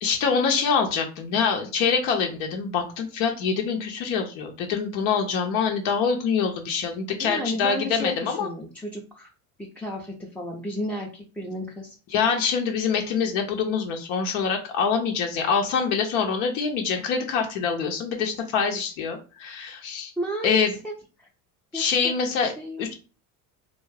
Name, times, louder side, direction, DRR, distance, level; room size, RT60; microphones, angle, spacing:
voice 1, 0.0-8.5 12.1-20.1 20.4-20.7 21.7-22.5 22.8-22.9, left 6 dB, 70° left, 3 dB, 0.7 m, -25 dB
voice 2, 7.2-9.3 9.8-11.9 20.2-20.9 21.2-21.3 21.7-22.1 22.4-22.9, equal, 5° left, -3 dB, 0.4 m, -33 dB
2.4 x 2.1 x 3.2 m, 0.34 s
hypercardioid pair, 70°, 45 cm